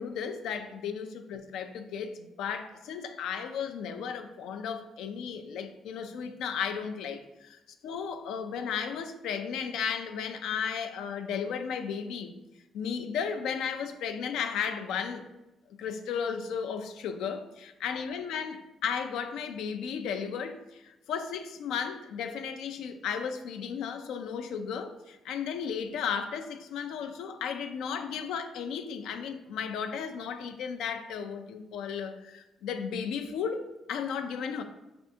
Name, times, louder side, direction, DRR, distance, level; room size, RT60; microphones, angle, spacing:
voice 1, 0.0-12.3 12.7-15.3 15.8-34.6, left 7 dB, 85° left, 7 dB, 0.4 m, -34 dB
4.2 x 3.3 x 2.7 m, 1.0 s
cardioid pair, 90°, 0 cm